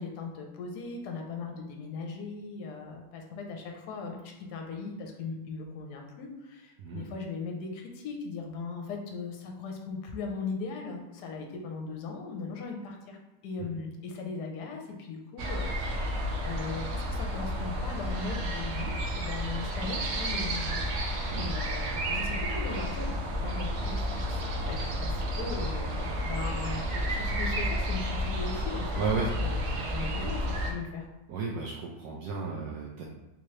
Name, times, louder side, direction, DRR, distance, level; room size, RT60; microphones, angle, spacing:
voice 1, 0.0-13.2 13.4-29.0 29.4-31.0, left 4 dB, 70° left, 2 dB, 1.2 m, -39 dB
sound 1, 15.4-30.7, equal, 90° right, 0.6 m, -31 dB
voice 2, 28.9-29.3 31.3-33.0, right 4 dB, 75° right, -2 dB, 1.1 m, -33 dB
3.5 x 2.9 x 3.2 m, 1.1 s
omnidirectional pair, 1.9 m